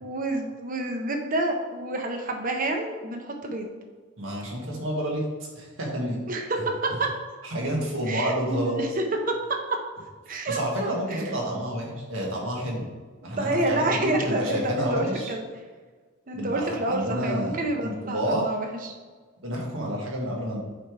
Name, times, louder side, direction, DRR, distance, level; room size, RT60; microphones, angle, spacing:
voice 1, 0.0-3.7 6.3-7.1 8.1-8.9 9.3-9.4 10.3-11.2 13.2-15.4 16.3-18.9, right 2 dB, 40° right, 3 dB, 0.8 m, -28 dB
voice 2, 4.2-6.2 7.4-8.8 10.5-12.9 13.2-15.3 16.3-18.5 19.4-20.6, equal, 75° right, -2 dB, 1.7 m, -29 dB
8.5 x 3.4 x 4.6 m, 1.4 s
head